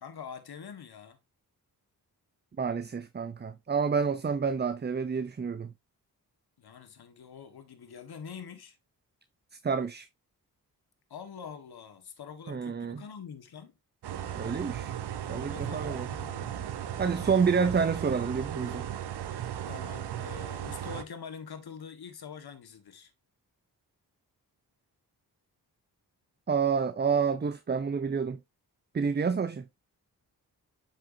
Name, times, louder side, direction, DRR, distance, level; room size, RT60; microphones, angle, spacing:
voice 1, 0.0-1.2 6.6-8.8 11.1-13.8 15.3-16.6 16.9-17.6 19.6-23.1, left 7 dB, 70° left, 1.6 m, -45 dB
voice 2, 2.6-5.7 9.6-10.1 12.5-13.0 14.4-14.9 15.3-16.1 17.0-18.8 26.5-28.4 28.9-29.6, right 5 dB, 25° right, 0.6 m, -28 dB
sound 1, 14.0-21.0, right 10 dB, 85° right, 0.9 m, -36 dB
7.8 x 6.1 x 2.7 m
cardioid pair, 60°, 39 cm